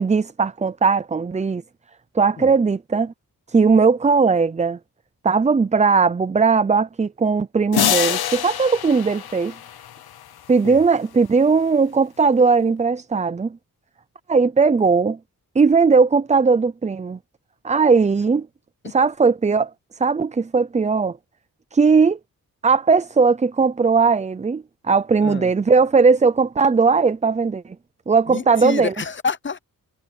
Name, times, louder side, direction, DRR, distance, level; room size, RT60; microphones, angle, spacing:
voice 1, 0.0-1.6 2.1-3.1 3.5-4.8 5.2-9.6 10.5-13.6 14.3-15.2 15.5-17.2 17.6-18.5 18.9-21.2 21.7-22.2 22.6-27.8 28.1-28.9, right 4 dB, 20° right, 0.4 m, -18 dB
sound 1, 7.7-10.2, left 10 dB, 90° left, 0.9 m, -24 dB
voice 2, 25.2-25.5 28.3-29.6, left 5 dB, 30° left, 0.7 m, -28 dB
wide cardioid pair, 135°, 36 cm